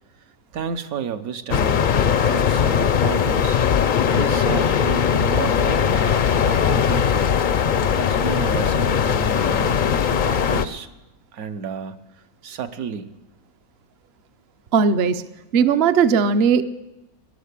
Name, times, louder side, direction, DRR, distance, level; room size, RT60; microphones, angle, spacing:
voice 1, 0.5-3.6 4.1-7.3 8.0-9.8 10.2-10.9 11.3-12.0 12.4-13.1, right 7 dB, 75° right, 8 dB, 1.3 m, -31 dB
sound 1, 1.5-10.6, left 7 dB, 65° left, 0.4 m, -19 dB
voice 2, 14.7-15.2 15.5-16.6, right 6 dB, 55° right, 11 dB, 0.7 m, -17 dB
13.0 x 11.0 x 8.3 m, 0.98 s
omnidirectional pair, 1.5 m